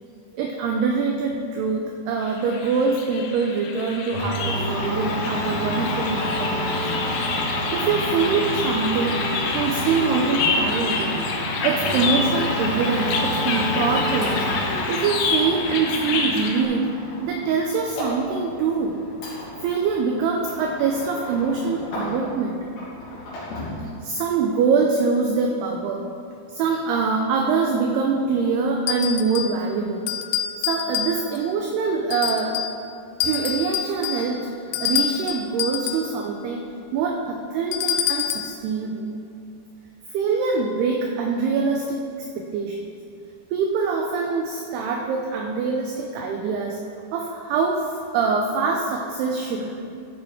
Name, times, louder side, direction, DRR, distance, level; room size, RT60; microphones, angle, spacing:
voice 1, 0.3-6.8 7.7-9.2 9.5-11.2 11.6-14.4 14.9-16.9 17.2-18.9 19.6-22.6 24.0-26.0 26.5-30.1 30.7-32.7 33.2-34.4 34.8-36.6 36.9-39.1 40.1-42.0 42.5-43.0 43.5-46.8 47.1-49.7, right 5 dB, 80° right, 2 dB, 2.3 m, -24 dB
sound 1, 2.2-16.6, left 4 dB, 75° left, 2.4 m, -28 dB
Domestic sounds home sounds, 4.1-22.5 22.7-23.8, left 1 dB, 55° left, 4.6 m, -29 dB
sound 2, 28.9-29.6 30.1-31.5 32.1-32.8 33.2-36.1 37.7-38.6, left 10 dB, 90° left, 2.4 m, -27 dB
14.0 x 7.1 x 4.3 m, 2.5 s
omnidirectional pair, 5.4 m